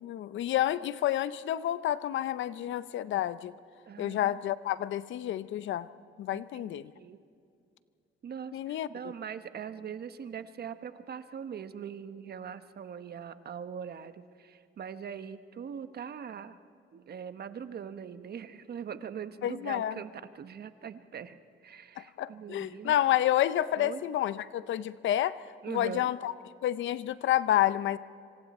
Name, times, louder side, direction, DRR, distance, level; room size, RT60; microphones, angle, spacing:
voice 1, 0.0-3.5 4.0-5.9 6.2-6.8 8.5-8.9 19.4-20.0 22.0-25.4 25.7-26.3 26.6-28.0, left 12 dB, 75° left, 16 dB, 0.7 m, -29 dB
voice 2, 3.9-4.3 6.3-7.2 8.2-16.6 16.9-22.9 23.8-24.0 25.6-26.0, right 7 dB, 55° right, 11 dB, 1.1 m, -42 dB
26.5 x 25.0 x 4.3 m, 2.5 s
cardioid pair, 90°, 20 cm